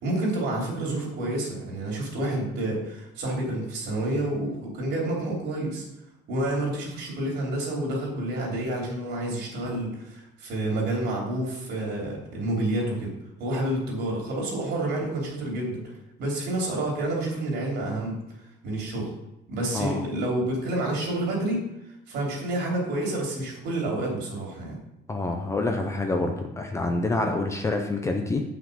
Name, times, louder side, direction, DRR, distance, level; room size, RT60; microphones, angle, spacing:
voice 1, 0.0-5.8 6.3-13.1 13.4-15.9 16.2-18.1 18.6-19.1 19.5-21.6 22.1-24.8, right 1 dB, 60° right, -2 dB, 3.3 m, -29 dB
voice 2, 25.1-28.4, left 2 dB, 15° left, 3 dB, 0.6 m, -27 dB
8.3 x 6.0 x 5.3 m, 0.88 s
cardioid pair, 180°, 20 cm